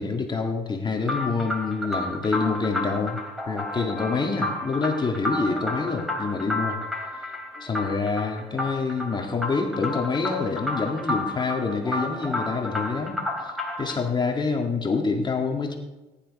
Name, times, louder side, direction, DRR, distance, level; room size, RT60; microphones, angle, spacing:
voice 1, 0.0-3.2 3.5-6.8 7.1-7.3 7.6-13.5 13.8-15.8, left 4 dB, 25° left, 2 dB, 2.0 m, -27 dB
sound 1, 1.0-14.0, left 1 dB, ahead, 3.4 m, -31 dB
19.0 x 10.5 x 5.4 m, 1.1 s
cardioid pair, 110°, 17 cm